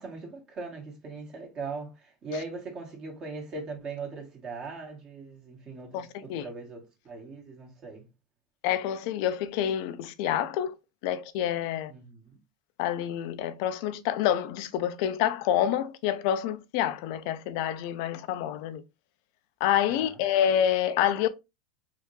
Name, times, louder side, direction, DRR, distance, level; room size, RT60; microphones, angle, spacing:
voice 1, 0.0-8.1 11.9-12.4 19.9-20.2, right 3 dB, 35° right, 1.5 m, -40 dB
voice 2, 5.9-6.4 8.6-10.7 11.0-11.9 12.8-18.8 19.6-21.3, left 10 dB, 65° left, 0.5 m, -27 dB
3.4 x 2.7 x 3.2 m
hypercardioid pair, 105°, 2 cm